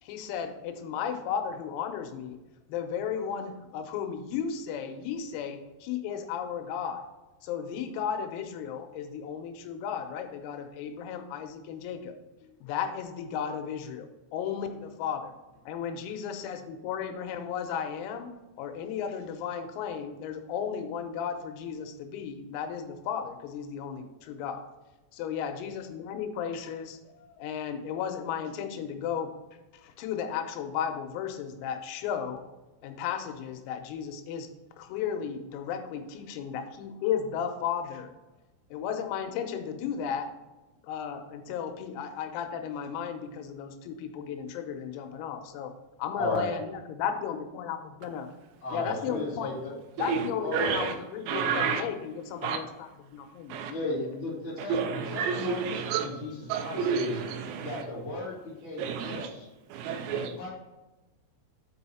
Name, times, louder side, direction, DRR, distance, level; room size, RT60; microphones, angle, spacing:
voice 1, 0.0-2.4 2.7-7.1 7.4-12.2 12.4-15.3 15.7-24.6 25.1-29.3 29.8-32.4 32.8-34.5 34.8-38.1 38.7-40.3 40.8-45.7 46.0-48.3 48.7-49.5 50.0-52.9 53.3-53.6 54.0-54.1, left 8 dB, 90° left, 6 dB, 3.6 m, -34 dB
voice 2, 46.1-46.5 48.6-49.7 50.4-50.7 53.7-57.1 57.6-59.5 60.1-60.5, left 2 dB, 55° left, -6 dB, 0.7 m, -35 dB
voice 3, 50.5-50.9 51.3-51.8 52.4-52.6 53.5-53.7 54.6-56.1 56.5-57.8 58.8-59.3 59.7-60.3, right 6 dB, 90° right, 7 dB, 3.5 m, -30 dB
7.5 x 5.5 x 4.2 m, 1.1 s
omnidirectional pair, 6.0 m